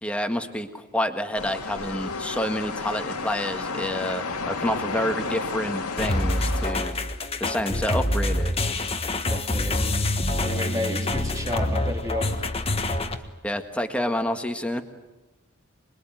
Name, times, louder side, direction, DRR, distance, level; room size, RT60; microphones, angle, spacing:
voice 1, 0.0-6.9 7.4-8.5 13.4-14.8, left 1 dB, 5° left, 6 dB, 1.7 m, -28 dB
sound 1, 1.3-6.7, left 4 dB, 90° left, 2.4 m, -32 dB
sound 2, 6.0-13.2, left 1 dB, 25° left, 1.5 m, -26 dB
voice 2, 9.3-9.9 10.4-12.5, left 1 dB, 15° right, 3 dB, 2.7 m, -31 dB
26.0 x 22.0 x 9.2 m, 1.1 s
head